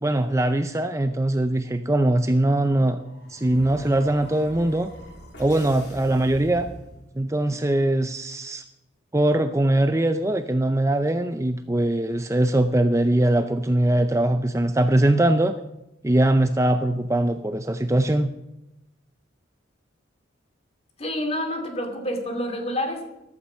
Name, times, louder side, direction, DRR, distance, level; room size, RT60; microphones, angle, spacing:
voice 1, 0.0-3.0 3.3-4.9 5.4-6.7 7.2-8.6 9.1-15.5 16.0-18.3, right 1 dB, 15° right, 8 dB, 0.5 m, -21 dB
sound 1, 2.4-7.4, equal, 60° left, 3.5 m, -43 dB
voice 2, 21.0-23.0, left 1 dB, 30° left, 4 dB, 2.5 m, -28 dB
14.5 x 11.5 x 5.6 m, 0.92 s
head